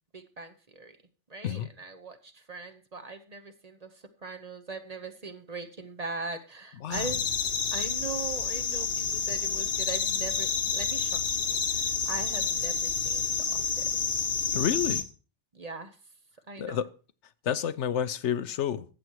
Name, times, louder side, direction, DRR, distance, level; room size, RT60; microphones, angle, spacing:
voice 1, 0.1-1.0 1.3-7.2 7.7-13.8 15.5-16.0 16.5-16.8, right 3 dB, 35° right, 8 dB, 0.9 m, -40 dB
sound 1, 6.9-15.0, left 5 dB, 60° left, 1.3 m, -29 dB
voice 2, 14.5-15.1 16.6-16.9 17.4-18.9, left 9 dB, 75° left, 14 dB, 1.0 m, -29 dB
14.0 x 8.3 x 4.6 m, 0.35 s
omnidirectional pair, 1.2 m